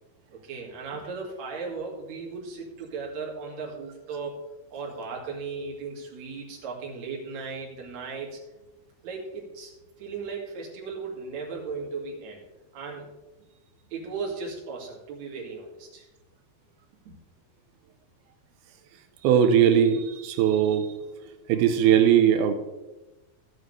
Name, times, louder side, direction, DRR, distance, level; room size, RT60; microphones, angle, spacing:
voice 1, 0.4-4.4 4.7-8.4 9.0-9.7 10.0-12.4 12.7-13.1 13.9-16.1 17.0-17.1, right 4 dB, 50° right, -2 dB, 3.2 m, -36 dB
voice 2, 19.2-21.0 21.5-22.5, right 9 dB, 80° right, 7 dB, 2.7 m, -20 dB
16.0 x 7.7 x 3.2 m, 1.1 s
omnidirectional pair, 4.4 m